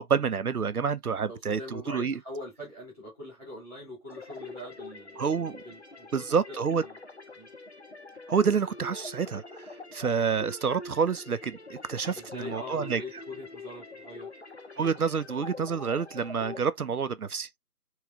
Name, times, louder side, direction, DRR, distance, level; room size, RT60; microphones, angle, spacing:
voice 1, 0.0-2.2 5.2-5.6 6.1-6.8 8.3-13.0 14.8-17.6, right 6 dB, 70° right, 0.7 m, -28 dB
voice 2, 1.3-5.2 5.6-7.0 7.3-7.5 12.0-14.3, left 1 dB, 10° right, 1.4 m, -42 dB
sound 1, 4.1-16.6, left 3 dB, 45° left, 0.7 m, -45 dB
3.2 x 3.1 x 3.5 m
figure-of-eight pair, 165°, 47 cm